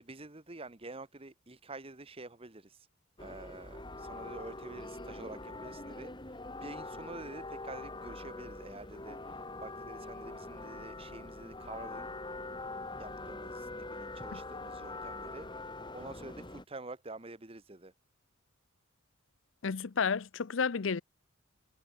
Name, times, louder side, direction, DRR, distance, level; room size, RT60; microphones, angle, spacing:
voice 1, 0.0-2.9 3.2-6.1 6.6-12.1 13.0-17.9, right 2 dB, 30° right, 1.3 m, -48 dB
sound 1, 3.2-16.6, left 2 dB, 25° left, 3.2 m, -44 dB
voice 2, 19.6-21.0, left 5 dB, 70° left, 0.6 m, -31 dB
head